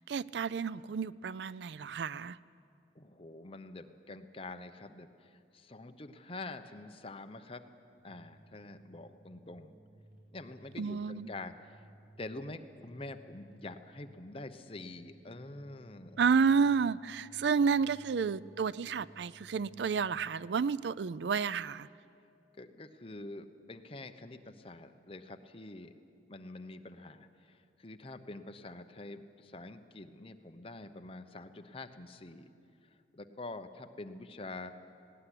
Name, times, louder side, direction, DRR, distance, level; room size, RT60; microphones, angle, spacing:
voice 1, 0.1-2.4 10.8-11.3 16.2-21.9, right 5 dB, 75° right, 19 dB, 0.4 m, -30 dB
voice 2, 2.9-7.7 8.0-9.7 10.3-11.8 12.2-16.2 22.6-25.9 26.3-32.5 32.8-34.7, left 2 dB, 30° left, 8 dB, 1.0 m, -46 dB
sound 1, 8.0-20.2, right 1 dB, 55° right, 5.8 m, -59 dB
18.5 x 17.5 x 10.0 m, 2.5 s
head